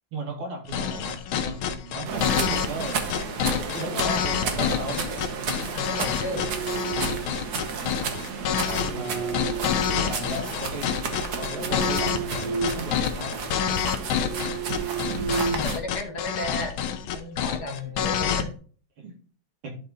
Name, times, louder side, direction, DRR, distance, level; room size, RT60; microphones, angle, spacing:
voice 1, 0.1-3.0 3.7-5.0 8.6-9.5 9.9-10.9 11.3-13.4 17.8-17.9 18.2-18.3 19.0-19.1 19.6-19.7, right 2 dB, 85° right, 1 dB, 3.0 m, -36 dB
sound 1, 0.7-18.4, left 8 dB, 80° left, 1.6 m, -27 dB
sound 2, 2.1-15.8, right 5 dB, 50° right, 1.6 m, -33 dB
voice 2, 3.8-4.2 5.6-6.6 15.5-16.8 17.1-18.5, left 2 dB, 50° left, 3 dB, 2.0 m, -34 dB
sound 3, 5.9-7.4 8.4-10.5 11.0-12.9 13.2-13.4 13.9-16.3, right 6 dB, 20° left, 1.0 m, -33 dB
11.5 x 4.3 x 4.0 m, 0.41 s
omnidirectional pair, 2.3 m